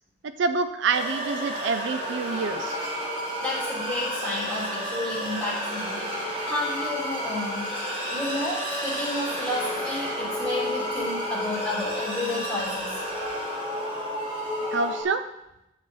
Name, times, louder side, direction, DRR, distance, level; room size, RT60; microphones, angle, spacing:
voice 1, 0.2-2.8 14.7-15.2, right 4 dB, 65° right, 11 dB, 0.4 m, -27 dB
sound 1, 0.9-15.0, equal, 30° right, 1.8 m, -31 dB
voice 2, 3.4-7.7 8.1-12.9, left 1 dB, 5° left, -8 dB, 2.9 m, -31 dB
8.6 x 7.5 x 3.2 m, 0.89 s
head